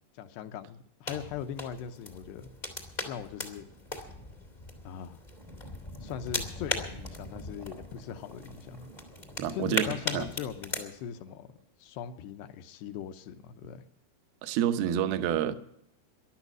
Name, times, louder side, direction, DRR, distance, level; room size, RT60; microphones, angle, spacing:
voice 1, 0.1-2.5 3.1-3.7 4.8-5.2 6.0-8.9 9.5-13.8, left 8 dB, 80° left, 9 dB, 2.7 m, -40 dB
sound 1, 1.1-10.8, left 2 dB, 40° left, 0.5 m, -38 dB
sound 2, 5.3-11.6 12.0-12.1, right 1 dB, 25° right, 0.7 m, -54 dB
voice 2, 9.4-9.9 10.1-10.3 14.4-15.5, right 10 dB, 75° right, 10 dB, 2.3 m, -28 dB
15.0 x 11.5 x 6.1 m, 0.72 s
omnidirectional pair, 5.3 m